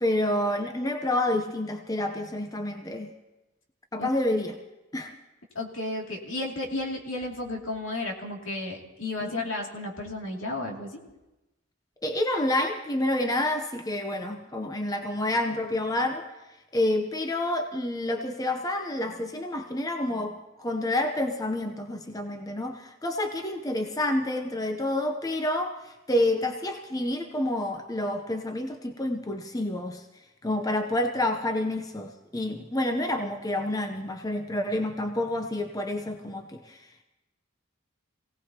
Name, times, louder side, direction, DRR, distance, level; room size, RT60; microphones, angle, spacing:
voice 1, 0.0-3.1 3.9-4.6 4.9-5.1 9.2-9.5 12.0-16.2 16.7-30.0 30.4-37.0, left 1 dB, 20° left, 5 dB, 0.7 m, -28 dB
voice 2, 5.5-11.0, left 2 dB, 75° left, -1 dB, 2.7 m, -33 dB
26.5 x 17.5 x 2.9 m, 1.0 s
head